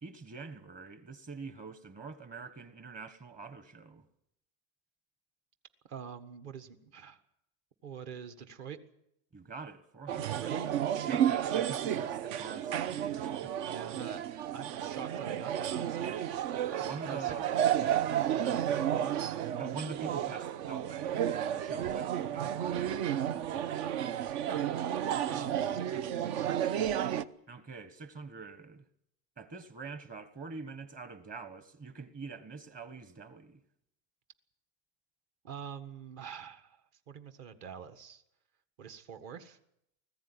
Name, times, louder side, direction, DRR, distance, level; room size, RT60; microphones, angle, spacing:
voice 1, 0.0-4.1 9.3-10.5 11.1-13.5 16.8-17.5 17.8-18.5 19.6-24.2 27.5-28.8 29.4-33.6, right 4 dB, 25° right, 1.3 m, -45 dB
voice 2, 5.8-7.2 7.8-8.8 10.4-10.7 11.1-11.3 13.6-16.1 17.1-17.3 18.6-19.2 24.5-24.6 25.3-26.5 35.4-38.2 38.8-39.6, right 7 dB, 45° right, 1.7 m, -45 dB
sound 1, 10.1-27.2, right 10 dB, 65° right, 1.0 m, -32 dB
20.0 x 15.0 x 10.0 m
cardioid pair, 175°, 35 cm